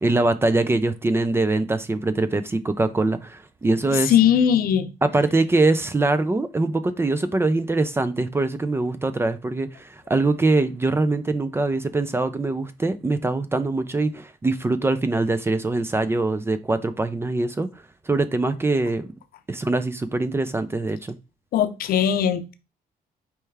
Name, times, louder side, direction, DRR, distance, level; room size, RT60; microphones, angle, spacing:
voice 1, 0.0-4.1 5.0-17.7 18.1-19.1 19.5-21.2, right 2 dB, 15° right, 0.4 m, -23 dB
voice 2, 3.9-4.9 21.5-22.5, left 9 dB, 75° left, 0.6 m, -19 dB
4.5 x 3.3 x 3.3 m
cardioid pair, 115°, 15 cm